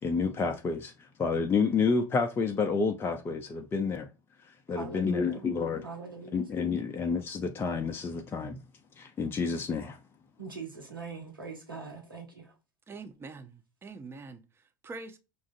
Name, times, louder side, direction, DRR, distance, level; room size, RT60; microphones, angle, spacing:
voice 1, 0.0-4.1 4.5-5.9 6.3-8.6 9.0-10.0, left 5 dB, 20° left, 0.4 m, -29 dB
voice 2, 4.7-5.5 5.8-6.5 10.4-12.6, right 4 dB, 85° right, 1.0 m, -42 dB
voice 3, 12.9-15.2, right 3 dB, 20° right, 0.7 m, -45 dB
5.2 x 2.4 x 2.4 m
figure-of-eight pair, 75°, 11 cm